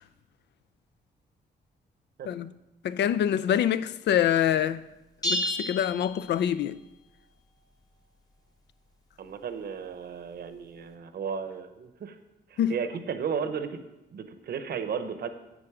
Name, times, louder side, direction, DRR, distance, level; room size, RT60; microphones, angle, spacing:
voice 1, 2.8-4.8 5.2-6.8 12.6-12.7, left 10 dB, 80° left, 0.4 m, -25 dB
sound 1, 5.2-6.8, left 1 dB, 20° left, 1.2 m, -31 dB
voice 2, 9.2-12.2 12.5-13.8 14.1-15.3, right 6 dB, 65° right, 0.9 m, -34 dB
10.0 x 7.8 x 4.8 m
wide cardioid pair, 145°, 17 cm